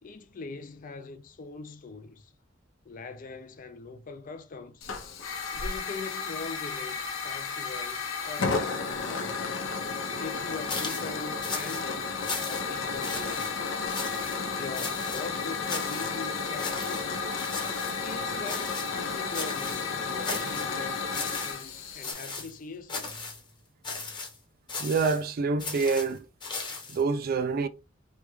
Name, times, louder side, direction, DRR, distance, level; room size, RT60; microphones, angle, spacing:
voice 1, 0.0-2.3 2.8-4.9 5.5-9.6 10.2-12.0 12.3-13.7 14.5-17.2 17.8-23.1, left 4 dB, 40° left, 0.4 m, -42 dB
Hiss / Fire, 4.8-22.1, left 4 dB, 75° left, 0.7 m, -32 dB
sound 1, 10.7-11.1 11.4-11.9 12.2-12.7 13.0-13.5 13.9-14.4 14.7-15.2 15.7-16.1 16.6-17.0 17.4-18.0 18.5-19.0 19.3-19.9 20.2-20.7 21.1-21.7 22.0-22.5 22.9-23.4 23.8-24.3 24.7-25.2 25.6-27.0, left 4 dB, 25° left, 0.9 m, -36 dB
voice 2, 24.8-26.2 26.9-27.7, right 4 dB, 45° right, 0.3 m, -26 dB
3.2 x 2.3 x 3.1 m
head